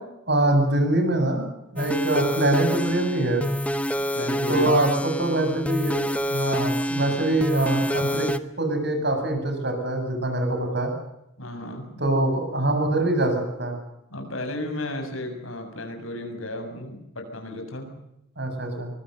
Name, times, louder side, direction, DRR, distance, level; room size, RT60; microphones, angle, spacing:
voice 1, 0.3-3.5 4.5-8.3 8.6-10.9 12.0-13.8 18.4-18.9, right 1 dB, 55° right, 5 dB, 7.8 m, -24 dB
sound 1, 1.8-8.4, equal, 5° left, 1.0 m, -27 dB
voice 2, 4.0-4.9 6.4-7.2 7.5-7.8 11.4-12.0 14.1-18.0 18.7-18.8, left 2 dB, 80° left, 5 dB, 7.2 m, -34 dB
24.5 x 24.0 x 6.7 m, 0.84 s
head